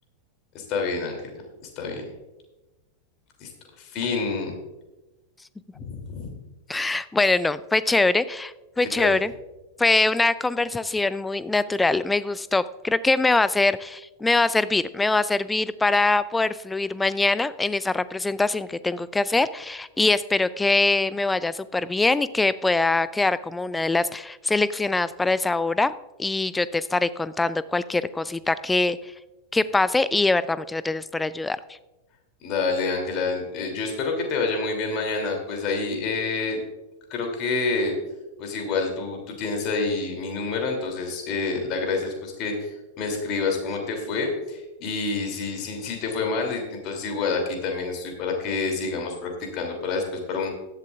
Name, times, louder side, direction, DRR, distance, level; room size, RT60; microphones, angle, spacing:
voice 1, 0.5-1.2 1.8-2.0 3.4-3.5 3.8-4.5 5.7-6.3 6.8-6.9 9.0-9.1 32.4-36.6 37.1-38.0 38.4-50.5, left 4 dB, 40° left, 2 dB, 2.9 m, -28 dB
voice 2, 6.7-9.3 9.8-25.9 26.2-29.0 29.5-31.6, left 3 dB, 10° left, 17 dB, 0.4 m, -23 dB
15.5 x 11.5 x 2.5 m, 1.1 s
figure-of-eight pair, 90°, 0 cm